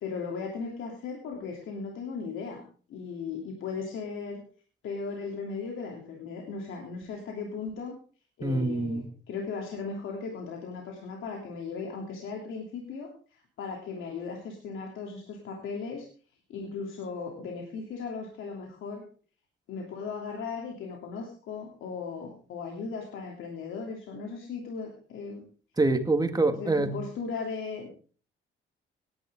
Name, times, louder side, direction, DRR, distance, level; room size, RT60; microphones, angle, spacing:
voice 1, 0.0-2.6 2.9-4.4 4.8-8.0 8.4-16.1 16.5-19.0 19.7-25.5 26.5-27.9, left 5 dB, 80° left, 1 dB, 3.2 m, -37 dB
voice 2, 8.4-9.1 25.8-27.0, right 2 dB, 20° right, 7 dB, 2.1 m, -25 dB
18.5 x 11.5 x 3.7 m, 0.41 s
cardioid pair, 90°, 20 cm